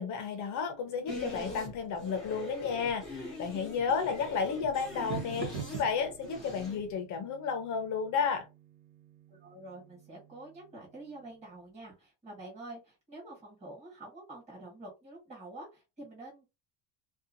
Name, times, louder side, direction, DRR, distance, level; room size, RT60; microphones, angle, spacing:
voice 1, 0.0-8.5, left 6 dB, 40° left, 6 dB, 0.6 m, -32 dB
sound 1, 0.5-11.3, right 6 dB, 85° right, 0.8 m, -48 dB
sound 2, 1.1-6.9, left 2 dB, ahead, 0.9 m, -43 dB
voice 2, 9.3-16.5, right 2 dB, 15° right, -3 dB, 1.5 m, -47 dB
2.7 x 2.3 x 2.5 m, 0.26 s
cardioid pair, 175°, 44 cm